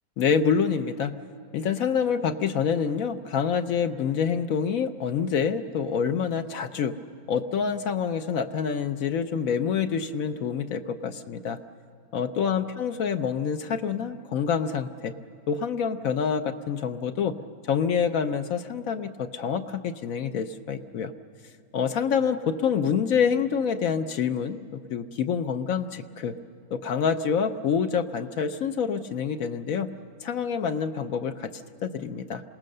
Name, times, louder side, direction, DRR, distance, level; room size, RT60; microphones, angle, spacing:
voice 1, 0.2-1.2 1.5-6.9 7.3-11.6 12.1-15.1 15.5-17.3 17.7-21.1 21.7-26.3 26.7-29.9 30.2-31.5 31.8-32.4, left 6 dB, 70° left, 8 dB, 1.1 m, -27 dB
27.5 x 18.5 x 6.6 m, 2.2 s
omnidirectional pair, 1.6 m